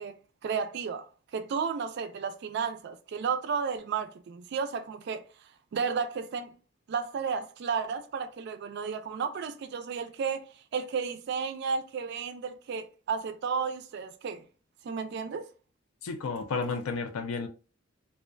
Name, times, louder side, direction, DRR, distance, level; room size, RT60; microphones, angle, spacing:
voice 1, 0.0-5.2 5.7-6.5 6.9-14.4 14.8-15.5, right 6 dB, 55° right, 0.3 m, -33 dB
voice 2, 16.0-17.5, left 4 dB, 90° left, 0.4 m, -32 dB
2.3 x 2.1 x 2.4 m
head